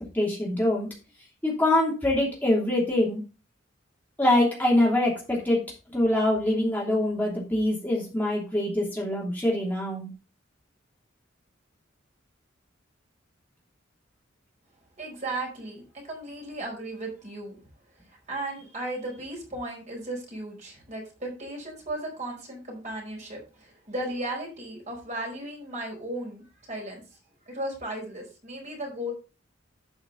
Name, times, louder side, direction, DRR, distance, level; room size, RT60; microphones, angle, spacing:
voice 1, 0.1-0.9 1.4-3.2 4.2-5.6 5.9-10.1, left 1 dB, 10° left, -4 dB, 2.9 m, -24 dB
voice 2, 15.0-17.6 18.1-27.0 27.5-29.1, right 1 dB, 40° right, 0 dB, 4.8 m, -35 dB
12.0 x 5.8 x 4.0 m, 0.32 s
head